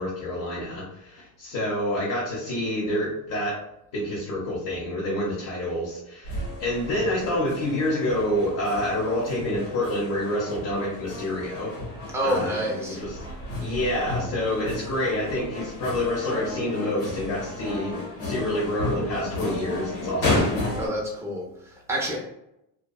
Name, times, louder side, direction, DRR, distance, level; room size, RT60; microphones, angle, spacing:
voice 1, 0.0-3.6 3.9-11.7 12.2-12.6 12.8-13.2 13.6-20.5, left 1 dB, 45° left, -6 dB, 0.8 m, -28 dB
sound 1, 6.2-20.9, left 2 dB, 85° left, 1.2 m, -32 dB
voice 2, 12.1-13.0 20.8-22.2, equal, 5° right, -2 dB, 0.5 m, -28 dB
2.6 x 2.2 x 2.3 m, 0.84 s
cardioid pair, 125°, 44 cm